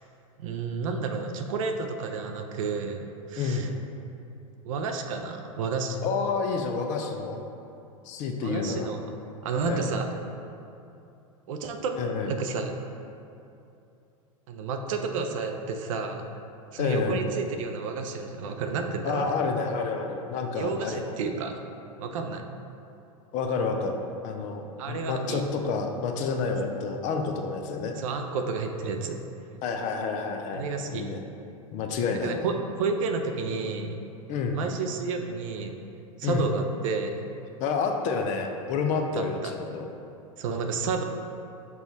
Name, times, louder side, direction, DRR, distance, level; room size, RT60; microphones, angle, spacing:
voice 1, 0.4-3.7 4.6-6.0 8.4-9.0 9.4-10.1 11.5-11.9 12.3-12.7 14.5-16.2 16.7-19.3 20.5-21.5 22.0-22.5 24.8-25.4 28.0-29.2 30.5-31.0 32.2-32.5 32.8-34.0 34.5-35.7 36.2-37.2 39.2-39.5 40.4-41.0, right 4 dB, 65° right, 5 dB, 0.5 m, -31 dB
voice 2, 3.4-3.7 6.0-7.4 8.1-8.9 9.6-9.9 12.0-12.3 16.8-17.2 19.0-21.1 23.3-24.6 24.9-28.0 29.6-30.6 30.9-31.2 31.7-32.4 34.3-34.6 36.2-36.5 37.6-39.9, left 5 dB, 45° left, 4 dB, 0.5 m, -29 dB
5.5 x 2.4 x 3.9 m, 2.7 s
hypercardioid pair, 95°, 18 cm